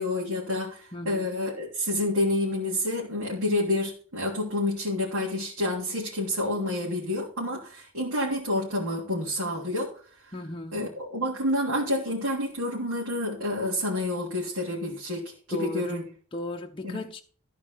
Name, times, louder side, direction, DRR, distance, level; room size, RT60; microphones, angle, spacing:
voice 1, 0.0-9.9 10.2-10.3 10.7-16.0 16.8-17.0, left 1 dB, 75° right, 3.2 m, -29 dB
voice 2, 0.9-1.3 10.3-10.9 15.5-17.2, left 1 dB, 25° left, 0.7 m, -36 dB
14.5 x 4.8 x 6.1 m
head